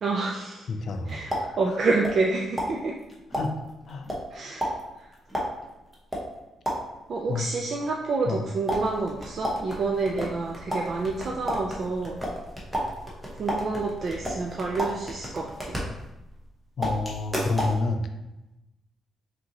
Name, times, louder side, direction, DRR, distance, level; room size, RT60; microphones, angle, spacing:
voice 1, 0.0-0.7 1.1-2.9 4.3-4.7 7.1-12.2 13.4-15.8, right 3 dB, 40° right, -1 dB, 0.4 m, -28 dB
voice 2, 0.7-1.8 3.3-3.6 3.9-4.1 7.3-7.5 8.3-8.4 16.8-18.1, left 3 dB, 50° left, 6 dB, 0.4 m, -29 dB
sound 1, 0.8-2.3 2.6-7.1 8.7-16.5 16.8-17.8, equal, 5° right, 0.8 m, -33 dB
5.2 x 2.7 x 2.8 m, 0.95 s
cardioid pair, 165°, 0 cm